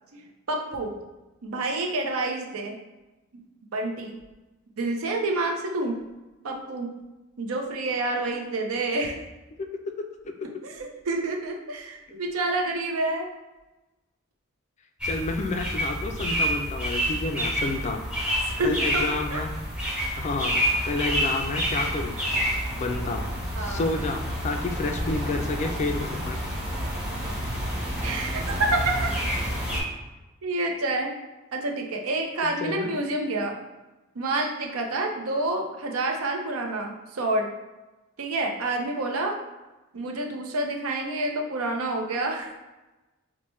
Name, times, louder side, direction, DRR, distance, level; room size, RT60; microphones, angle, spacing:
voice 1, 0.5-0.9 1.4-2.8 3.7-4.2 4.8-6.0 6.4-6.9 7.4-9.2 10.6-13.3 18.4-19.4 23.6-23.9 28.0-29.1 30.4-31.1 31.5-33.5 34.1-37.5 38.2-39.3 39.9-42.5, right 2 dB, 75° right, 2 dB, 0.6 m, -28 dB
voice 2, 9.5-10.5 15.0-18.0 18.6-19.5 20.2-22.2 22.7-23.3 23.6-26.4 32.6-32.9, left 3 dB, 35° left, 5 dB, 0.3 m, -30 dB
sound 1, 15.0-29.8, equal, 5° right, 0.8 m, -29 dB
4.5 x 2.1 x 3.1 m, 1.1 s
head